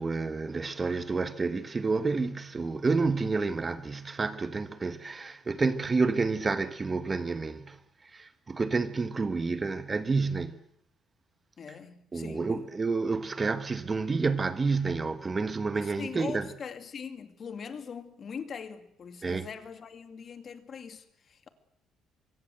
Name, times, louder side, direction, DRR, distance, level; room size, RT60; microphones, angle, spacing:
voice 1, 0.0-10.6 12.1-16.5 19.2-19.5, right 4 dB, 25° right, 1.2 m, -29 dB
voice 2, 11.6-12.6 15.7-21.5, left 6 dB, 40° left, 2.3 m, -42 dB
24.5 x 22.5 x 8.0 m
cardioid pair, 140°, 0 cm